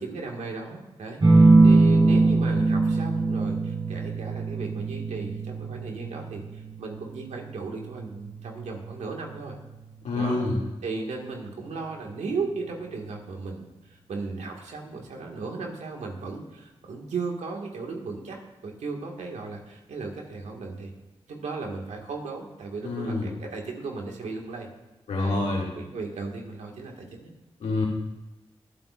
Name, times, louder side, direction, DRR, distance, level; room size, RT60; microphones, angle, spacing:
voice 1, 0.0-9.6 10.1-10.4 10.8-20.9 21.3-24.7 25.2-27.3, right 4 dB, 85° right, 0 dB, 1.9 m, -36 dB
sound 1, 1.2-10.3 11.7-12.3, right 3 dB, 45° right, 4.5 m, -23 dB
voice 2, 10.0-10.6 22.8-23.3 25.1-25.7 27.6-27.9, left 2 dB, 85° left, -3 dB, 2.4 m, -26 dB
22.5 x 8.6 x 2.6 m, 1.0 s
supercardioid pair, 40°, 12 cm